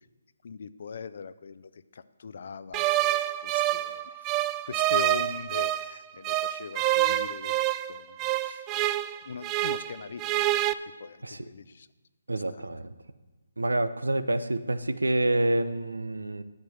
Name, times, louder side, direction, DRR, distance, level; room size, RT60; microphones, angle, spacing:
voice 1, 0.4-2.9 3.4-4.2 4.7-7.6 7.9-8.7 9.2-10.6 11.0-11.9 12.5-12.6, left 6 dB, 55° left, 15 dB, 0.5 m, -41 dB
sound 1, 2.7-5.9 6.2-9.9 10.2-10.7, right 15 dB, 20° right, 0.3 m, -27 dB
voice 2, 12.3-12.9 13.6-16.4, right 1 dB, 85° right, 12 dB, 0.7 m, -27 dB
10.5 x 7.5 x 6.6 m, 1.2 s
figure-of-eight pair, 145°, 0 cm